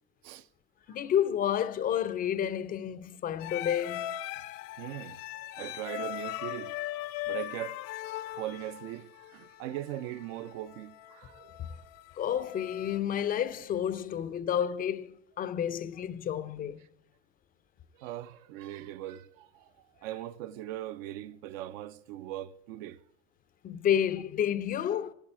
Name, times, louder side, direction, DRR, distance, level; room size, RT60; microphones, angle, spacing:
voice 1, 0.9-4.1 7.1-7.3 11.6-11.7 12.2-16.8 23.6-25.1, left 9 dB, 25° left, 0.3 m, -30 dB
sound 1, 3.4-13.0, left 14 dB, 65° left, 0.6 m, -40 dB
voice 2, 4.8-6.8 7.3-7.8 8.4-11.7 17.9-23.0, right 13 dB, 75° right, 0.5 m, -40 dB
8.8 x 7.3 x 8.7 m
supercardioid pair, 115°, 40 cm